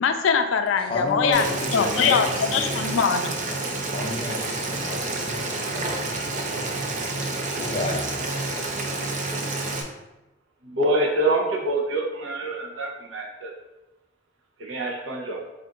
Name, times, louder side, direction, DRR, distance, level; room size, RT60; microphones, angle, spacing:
voice 1, 0.0-1.5 1.7-3.4, left 6 dB, 80° left, 7 dB, 0.3 m, -22 dB
voice 2, 0.9-2.8 3.9-6.6 7.6-8.6, left 2 dB, 30° left, 0 dB, 0.5 m, -32 dB
Boiling, 1.3-9.8, right 2 dB, 40° right, 0.5 m, -29 dB
voice 3, 10.7-13.5 14.6-15.4, right 1 dB, 75° right, -1 dB, 0.7 m, -25 dB
3.8 x 2.5 x 3.6 m, 1.0 s
head